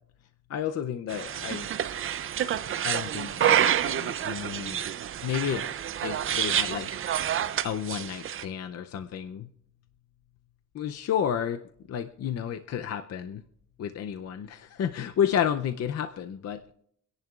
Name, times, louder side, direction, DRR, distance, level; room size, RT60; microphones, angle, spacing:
voice 1, 0.5-1.7 2.8-4.8 5.2-5.7 6.0-9.5 10.7-11.6 11.9-13.4 13.8-16.7, left 9 dB, 45° left, 9 dB, 0.6 m, -31 dB
sound 1, 1.1-8.4, right 10 dB, 40° right, 0.5 m, -28 dB
25.5 x 10.5 x 2.4 m, 0.66 s
cardioid pair, 150°, 35 cm